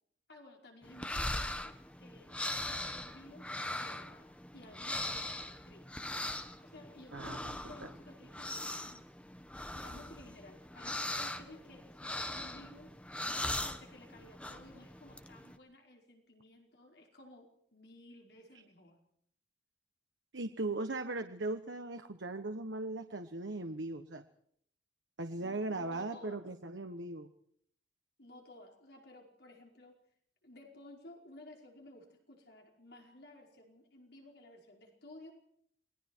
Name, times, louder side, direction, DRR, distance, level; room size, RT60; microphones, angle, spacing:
voice 1, 0.3-3.5 3.7-9.0 9.7-12.9 13.6-19.0 25.4-26.4 28.2-30.0 30.4-35.3, left 1 dB, 60° left, 1 dB, 5.1 m, -56 dB
sound 1, 0.8-15.6, left 1 dB, 5° left, 1.2 m, -41 dB
voice 2, 7.1-7.9 20.3-24.2 25.2-27.3, right 2 dB, 85° right, 7 dB, 1.2 m, -39 dB
28.5 x 21.0 x 4.6 m, 0.67 s
head